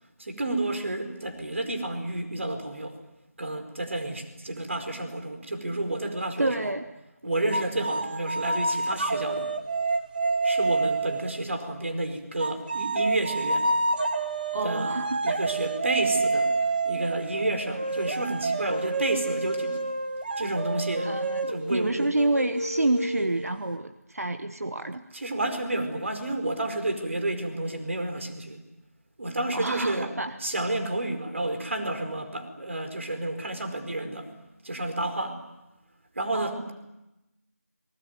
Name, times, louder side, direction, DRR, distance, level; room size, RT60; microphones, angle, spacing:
voice 1, 0.2-3.0 3.4-6.7 7.2-9.5 10.4-13.7 14.6-15.0 15.2-16.5 16.8-19.8 20.4-21.1 21.5-22.1 25.1-28.6 29.2-30.1 30.4-34.3 34.6-35.4 36.1-36.7, right 2 dB, 50° right, 7 dB, 4.7 m, -30 dB
voice 2, 6.4-6.8 14.5-15.4 21.0-25.0 29.5-30.4 36.3-36.6, right 2 dB, 65° right, 9 dB, 1.4 m, -28 dB
sound 1, 7.5-11.4 12.4-23.7, right 3 dB, 35° right, 1.6 m, -28 dB
30.0 x 20.5 x 9.3 m, 0.96 s
figure-of-eight pair, 170°, 9 cm